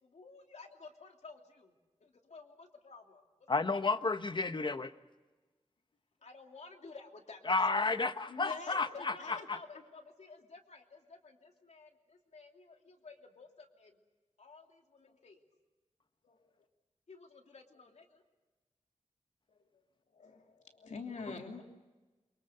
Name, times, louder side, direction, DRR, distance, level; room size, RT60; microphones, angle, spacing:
voice 1, 0.0-1.7 2.0-3.2 3.7-3.8 6.2-7.6 9.1-14.0 14.4-15.4 17.1-18.2, left 3 dB, 70° left, 3 dB, 2.9 m, -54 dB
voice 2, 3.5-4.9 7.5-9.6, left 3 dB, 40° left, 10 dB, 1.1 m, -32 dB
voice 3, 8.3-8.8 9.2-9.5 15.0-15.1 16.2-16.4 19.5-19.6 20.1-21.6, left 4 dB, 85° left, 2 dB, 3.0 m, -45 dB
28.5 x 23.5 x 6.8 m, 1.2 s
wide cardioid pair, 90°, 12 cm